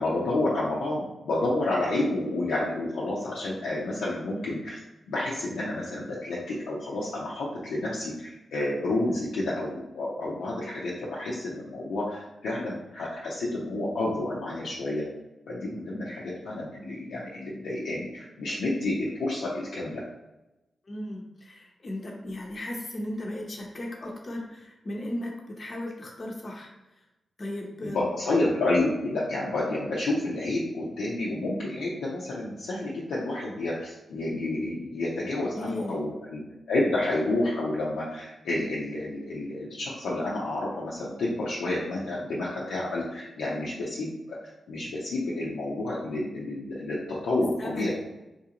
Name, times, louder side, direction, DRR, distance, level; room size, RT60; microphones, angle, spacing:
voice 1, 0.0-4.8 5.1-15.0 15.5-20.0 27.8-36.4 36.7-44.4 44.7-47.9, left 2 dB, 85° left, -6 dB, 0.6 m, -30 dB
voice 2, 20.9-27.0 27.4-28.1 35.5-36.0 47.6-47.9, left 1 dB, 50° left, 0 dB, 0.7 m, -36 dB
3.9 x 2.5 x 2.9 m, 0.99 s
supercardioid pair, 45°, 0 cm